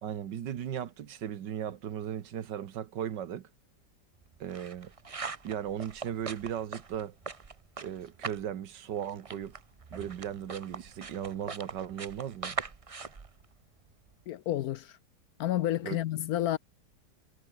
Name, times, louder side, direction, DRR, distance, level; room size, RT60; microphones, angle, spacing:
voice 1, 0.0-3.5 4.4-4.9 5.4-7.1 7.8-9.5 9.9-12.6 15.8-16.0, right 9 dB, 80° right, 1.8 m, -37 dB
sound 1, 4.2-8.5 8.8-14.1, right 4 dB, 30° right, 0.6 m, -42 dB
voice 2, 14.3-15.0 15.4-16.6, left 13 dB, 70° left, 1.0 m, -30 dB
omnidirectional pair, 1.9 m